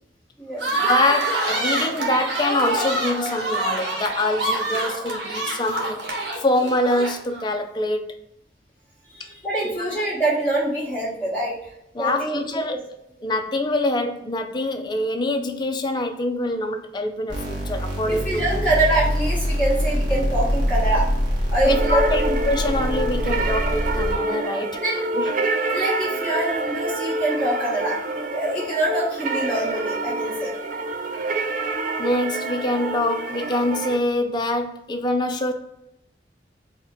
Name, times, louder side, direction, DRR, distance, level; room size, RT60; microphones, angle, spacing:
sound 1, 0.6-7.5, right 2 dB, 85° right, 1.0 m, -26 dB
voice 1, 0.9-6.0 6.4-8.2 9.6-10.0 11.9-12.8 13.2-18.7 21.7-24.8 25.1-25.2 32.0-35.5, left 2 dB, 25° left, 0.4 m, -25 dB
voice 2, 9.0-11.7 12.0-12.8 18.1-21.1 21.5-22.4 24.8-24.9 25.7-30.5, right 1 dB, 5° left, 1.3 m, -25 dB
sound 2, 17.3-24.1, equal, 25° right, 1.0 m, -24 dB
sound 3, 21.7-34.0, right 2 dB, 45° right, 0.4 m, -27 dB
4.2 x 2.1 x 3.6 m
head